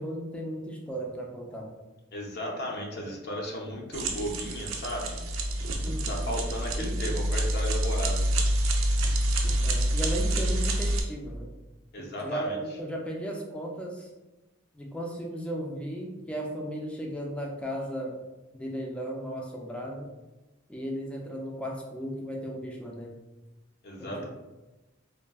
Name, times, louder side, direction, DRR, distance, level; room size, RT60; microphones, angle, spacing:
voice 1, 0.0-1.7 2.9-3.1 5.8-6.4 6.8-7.1 9.6-11.5 12.2-14.1 14.7-18.2 18.5-20.1 20.7-23.2 24.0-24.3, right 1 dB, 5° left, -1 dB, 0.4 m, -36 dB
voice 2, 2.1-5.2 6.1-8.2 11.9-12.6 23.8-24.3, equal, 55° left, -1 dB, 0.5 m, -35 dB
sound 1, 3.9-11.0, right 1 dB, 85° right, 0.5 m, -27 dB
3.4 x 2.0 x 2.3 m, 1.1 s
head